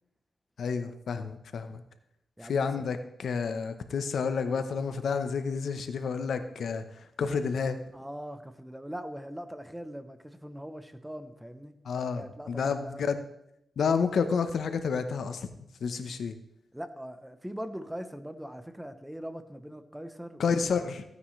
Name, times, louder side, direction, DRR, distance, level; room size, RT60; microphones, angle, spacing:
voice 1, 0.6-1.8 2.5-6.8 7.2-7.8 11.8-13.2 13.8-15.5 15.8-16.3 20.4-21.0, left 5 dB, 75° left, 9 dB, 0.9 m, -30 dB
voice 2, 2.4-2.7 3.5-3.6 7.9-11.8 12.2-13.1 16.7-20.9, equal, 5° right, 9 dB, 0.8 m, -41 dB
15.5 x 9.5 x 3.2 m, 0.80 s
wide cardioid pair, 105°, 0 cm